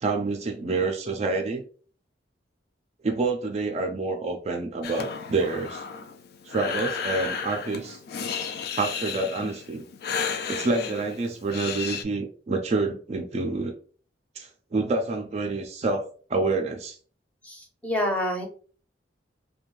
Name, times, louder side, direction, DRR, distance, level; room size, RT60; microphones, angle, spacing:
voice 1, 0.0-1.6 3.0-5.8 6.5-8.0 8.8-9.8 10.5-13.7 14.4-17.0, right 3 dB, 35° right, 3 dB, 0.4 m, -28 dB
Breathing, 4.8-12.0, left 6 dB, 60° left, 0.3 m, -33 dB
voice 2, 17.8-18.5, left 1 dB, 10° left, 1 dB, 0.6 m, -26 dB
2.6 x 2.2 x 3.0 m, 0.41 s
head